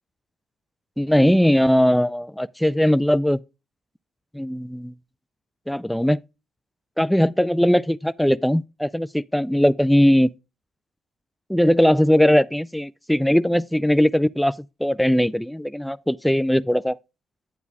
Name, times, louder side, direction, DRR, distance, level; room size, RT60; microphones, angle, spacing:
voice 1, 1.0-3.4 4.3-4.9 5.7-6.2 7.0-10.3 11.5-17.0, equal, 5° left, 0.3 m, -19 dB
9.4 x 8.3 x 2.3 m
cardioid pair, 90°, 0 cm